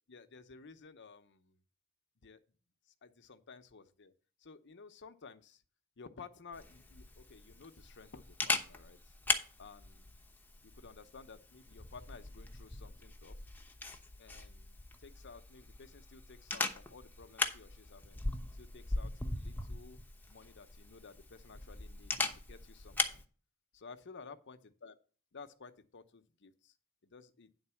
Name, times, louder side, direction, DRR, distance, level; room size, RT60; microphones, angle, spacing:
voice 1, 0.1-1.6 2.2-2.4 3.0-4.1 4.4-5.6 6.0-9.1 9.6-10.1 10.6-13.4 14.2-18.2 18.5-20.0 20.3-23.2 23.7-25.0 25.3-26.7 27.0-27.5, left 4 dB, 55° left, 9 dB, 0.8 m, -54 dB
Camera, 6.5-23.2, left 3 dB, 10° left, 0.9 m, -40 dB
9.7 x 4.0 x 6.9 m, 0.39 s
head